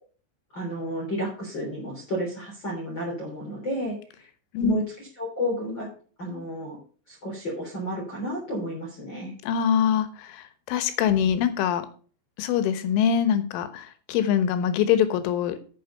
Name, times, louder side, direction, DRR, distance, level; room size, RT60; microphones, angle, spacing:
voice 1, 0.5-4.3 4.6-5.9 6.2-6.8 7.1-9.3, equal, 25° left, -3 dB, 3.4 m, -31 dB
voice 2, 9.4-11.9 12.4-15.6, left 9 dB, 90° left, 11 dB, 3.6 m, -24 dB
9.0 x 7.8 x 5.5 m, 0.41 s
omnidirectional pair, 5.5 m